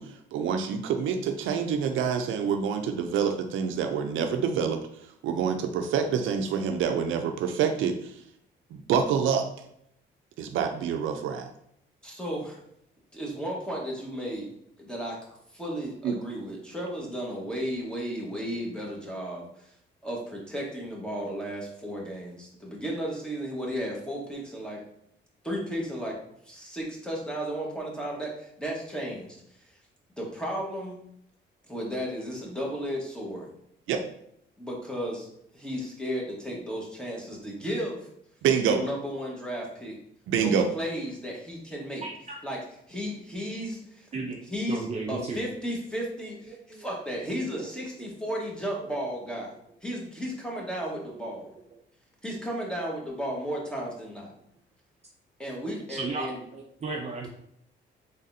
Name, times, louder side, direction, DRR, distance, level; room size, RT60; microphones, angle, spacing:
voice 1, 0.0-4.8 5.2-8.1 8.7-9.5 10.4-11.5 16.0-16.1 33.9-34.0 38.4-38.8 40.3-40.7, right 7 dB, 80° right, 6 dB, 0.5 m, -27 dB
voice 2, 12.0-12.6 13.1-14.5 14.8-15.2 15.5-19.4 20.0-24.8 25.4-26.1 26.4-29.4 30.2-31.0 31.6-33.5 34.6-35.3 35.5-38.1 38.7-39.9 40.4-42.0 42.4-42.6 42.9-44.1 44.5-49.5 49.8-51.5 52.2-54.3 55.4-56.4, equal, 5° left, -3 dB, 1.3 m, -34 dB
voice 3, 42.0-42.4 44.1-44.4 44.7-45.4 46.2-46.8 47.6-48.1 48.7-48.9 55.9-57.3, right 3 dB, 35° right, 0 dB, 0.5 m, -35 dB
4.0 x 3.5 x 2.6 m, 0.72 s
cardioid pair, 90°, 20 cm